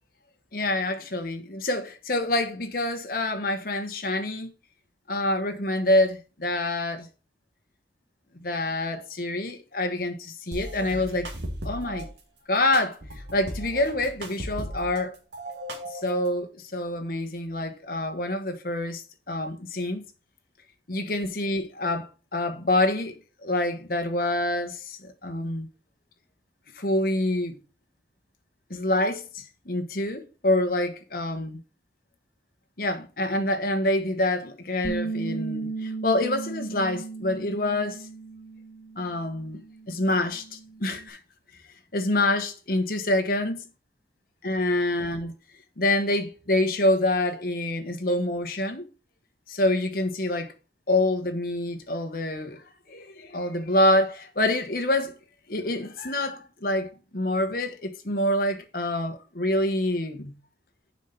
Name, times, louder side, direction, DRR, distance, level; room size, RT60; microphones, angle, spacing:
voice 1, 0.5-4.5 5.1-7.1 8.4-11.3 11.6-12.1 12.5-13.0 13.3-15.2 15.9-20.0 20.9-25.7 26.7-27.6 28.7-31.6 32.8-38.1 39.0-39.6 39.9-41.2 41.9-43.6 44.4-45.3 45.8-48.9 49.5-50.5 50.9-52.6 52.9-55.1 55.5-60.3, left 1 dB, 50° left, 1.2 m, -26 dB
sound 1, 10.5-12.1 12.7-15.0 15.3-16.3, right 1 dB, 70° right, 2.3 m, -36 dB
Bass guitar, 34.8-39.2 39.5-41.1, right 3 dB, 65° left, 1.9 m, -36 dB
7.2 x 5.4 x 5.8 m
head